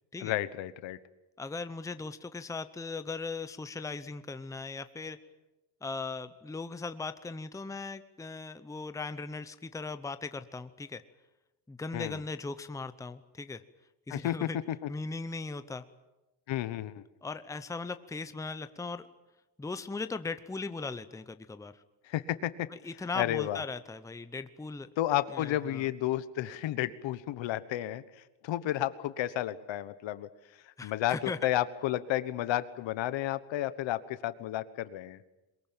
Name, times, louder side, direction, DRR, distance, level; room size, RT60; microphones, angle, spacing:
voice 1, 0.2-1.0 11.9-12.2 14.1-14.9 16.5-17.0 22.0-22.7 23.1-23.6 25.0-30.3 30.6-35.2, left 13 dB, 70° left, 14 dB, 1.3 m, -32 dB
voice 2, 1.4-5.2 5.8-11.0 11.7-13.6 14.1-14.6 14.9-15.8 17.2-19.1 19.6-21.8 22.7-24.9 25.3-25.9 30.8-31.4, left 3 dB, 5° left, 11 dB, 0.8 m, -38 dB
22.5 x 21.5 x 9.0 m, 1.0 s
cardioid pair, 145°, 46 cm